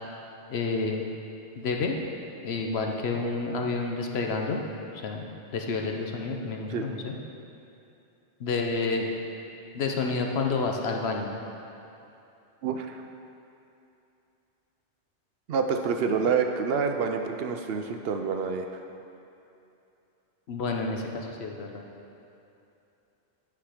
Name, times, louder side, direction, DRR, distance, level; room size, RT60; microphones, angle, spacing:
voice 1, 0.5-1.1 1.6-2.0 2.4-4.6 5.0-5.3 5.5-7.1 8.4-9.1 9.7-11.3 20.5-21.8, left 4 dB, 65° left, 2 dB, 1.0 m, -29 dB
voice 2, 12.6-13.0 15.5-18.7, right 5 dB, 65° right, 5 dB, 0.7 m, -27 dB
8.7 x 6.0 x 4.9 m, 2.8 s
omnidirectional pair, 1.2 m